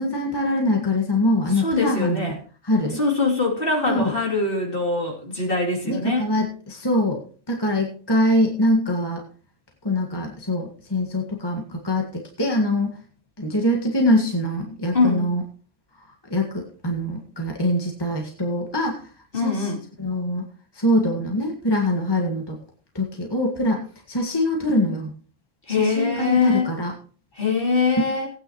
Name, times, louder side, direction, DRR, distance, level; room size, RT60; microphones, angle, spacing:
voice 1, 0.0-2.3 2.6-3.0 3.9-4.1 5.8-7.2 7.5-9.2 9.8-12.9 13.4-15.4 16.3-19.0 19.4-19.7 20.0-20.5 20.8-22.6 23.0-25.1 25.8-26.9, left 1 dB, 20° left, 0 dB, 1.8 m, -23 dB
voice 2, 1.5-2.4 2.9-6.3 14.9-15.3 19.3-19.8 25.7-26.7 27.4-28.3, left 3 dB, 45° left, -2 dB, 3.4 m, -23 dB
18.0 x 9.5 x 3.0 m, 0.40 s
omnidirectional pair, 1.3 m